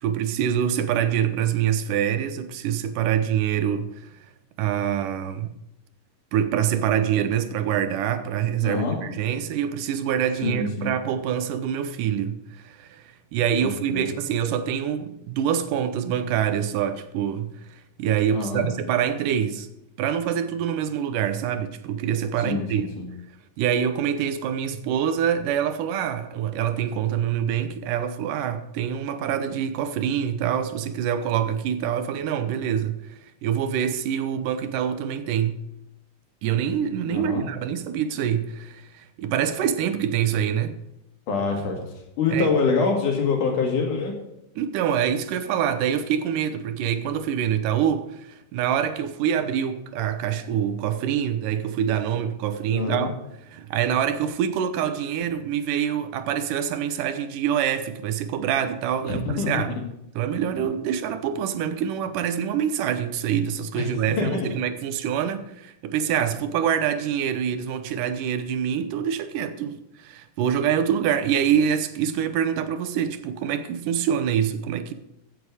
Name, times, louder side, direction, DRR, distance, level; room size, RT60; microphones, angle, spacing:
voice 1, 0.0-4.1 4.6-5.5 6.3-19.7 20.0-22.8 23.6-35.6 36.4-40.8 42.3-42.5 44.6-53.1 53.4-59.7 60.2-74.9, right 9 dB, 80° right, 2.4 m, -25 dB
voice 2, 8.6-9.0 10.4-10.9 13.6-14.1 18.3-18.7 22.4-23.1 37.1-37.4 41.3-41.8 42.2-44.1 52.7-53.1 59.0-59.8 63.7-63.9 64.2-64.5, left 4 dB, 70° left, 3.8 m, -25 dB
15.5 x 7.8 x 4.9 m
omnidirectional pair, 3.7 m